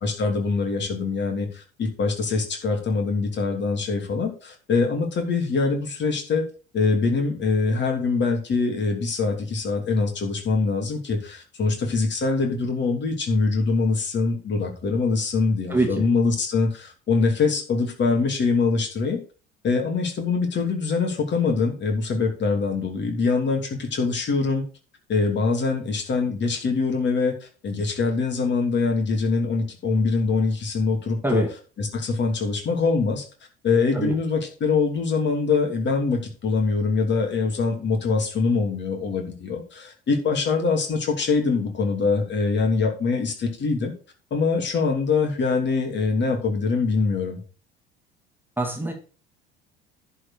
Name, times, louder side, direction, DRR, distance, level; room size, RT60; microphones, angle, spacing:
voice 1, 0.0-6.4 6.7-19.2 19.6-24.6 25.1-31.4 31.8-33.2 33.6-43.9 44.3-47.4, left 4 dB, 40° left, 3 dB, 2.9 m, -23 dB
voice 2, 15.7-16.1 31.2-31.5 33.9-34.1 48.6-48.9, right 2 dB, 5° right, 2 dB, 1.9 m, -24 dB
11.0 x 4.6 x 6.6 m, 0.37 s
figure-of-eight pair, 60°, 29 cm